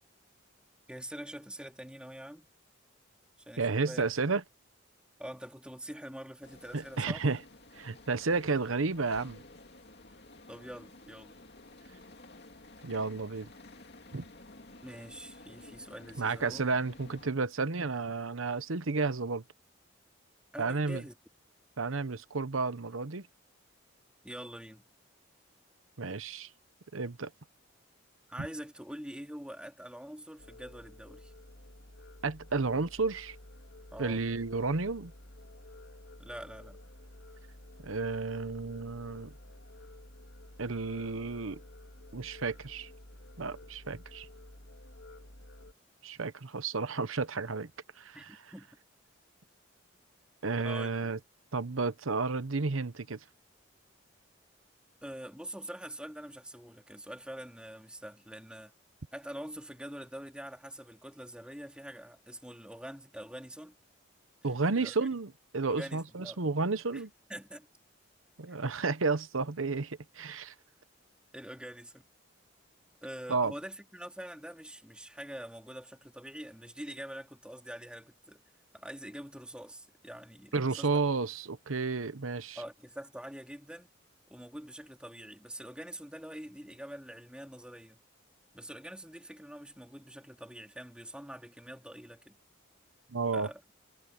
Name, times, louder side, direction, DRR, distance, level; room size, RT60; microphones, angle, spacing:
voice 1, 0.9-2.5 3.5-4.0 5.2-7.2 10.5-11.3 14.8-16.6 20.5-21.1 24.2-24.8 28.3-31.3 33.9-34.2 36.2-36.8 48.1-48.3 48.5-48.7 50.6-51.1 55.0-58.7 59.1-63.7 64.8-64.9 65.6-66.4 66.9-67.0 67.3-67.7 68.5-68.6 71.3-72.1 73.0-78.4 78.7-81.0 82.6-83.9 84.3-88.0 88.5-92.4 93.3-93.6, equal, 5° right, 3.2 m, -45 dB
voice 2, 3.6-4.4 6.7-7.4 7.8-9.4 12.8-13.5 14.1-14.2 16.2-19.4 20.6-21.0 21.8-23.3 26.0-26.5 26.9-27.3 28.4-28.5 32.2-33.4 34.0-35.1 37.8-39.3 40.6-41.6 42.1-42.9 43.4-44.3 46.0-47.7 48.0-48.4 50.4-51.2 51.5-53.2 64.4-67.1 68.4-70.5 73.3-73.5 80.5-82.6 93.1-93.5, right 4 dB, 85° right, 1.0 m, -32 dB
sound 1, 6.4-17.3, left 2 dB, 55° left, 2.7 m, -53 dB
sound 2, 30.4-45.7, left 1 dB, 70° left, 3.2 m, -52 dB
head